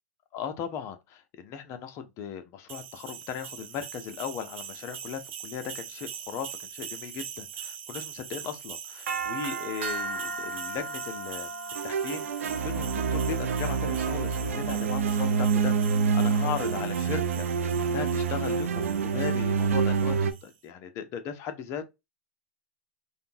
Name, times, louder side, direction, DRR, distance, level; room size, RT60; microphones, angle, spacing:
voice 1, 0.3-11.5 11.8-20.1 20.4-21.9, left 8 dB, 40° left, 0.7 m, -37 dB
sound 1, 2.7-20.4, right 6 dB, 70° right, 0.8 m, -39 dB
sound 2, 11.8-20.3, right 6 dB, 85° right, 0.5 m, -27 dB
3.6 x 2.2 x 2.7 m
hypercardioid pair, 115°, 7 cm